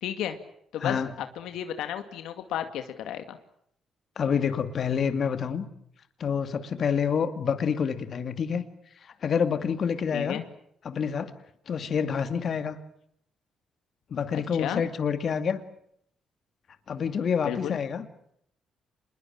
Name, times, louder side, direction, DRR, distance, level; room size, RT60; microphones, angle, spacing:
voice 1, 0.0-0.4 0.7-3.4 10.1-10.4 14.3-14.8 17.4-17.8, left 10 dB, 85° left, 8 dB, 2.3 m, -33 dB
voice 2, 0.8-1.1 4.2-5.7 6.2-8.6 9.2-10.4 10.8-11.3 11.7-12.8 14.1-15.6 16.9-18.1, left 7 dB, 55° left, 9 dB, 2.3 m, -27 dB
27.0 x 21.5 x 8.9 m, 0.71 s
cardioid pair, 90°, 0 cm